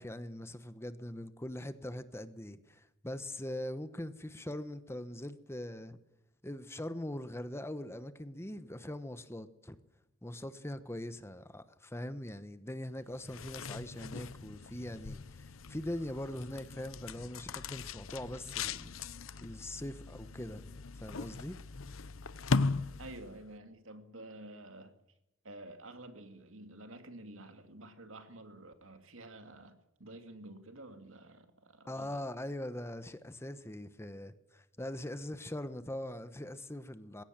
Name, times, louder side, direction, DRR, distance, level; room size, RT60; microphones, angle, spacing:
voice 1, 0.0-6.0 6.4-9.8 10.2-18.9 19.4-20.7 21.0-21.6 31.9-37.2, left 1 dB, 15° left, 1.0 m, -42 dB
sound 1, 13.1-23.5, left 4 dB, 90° left, 0.8 m, -39 dB
voice 2, 23.0-24.9 25.4-32.2, right 2 dB, 80° right, 2.4 m, -50 dB
20.5 x 17.0 x 8.9 m
head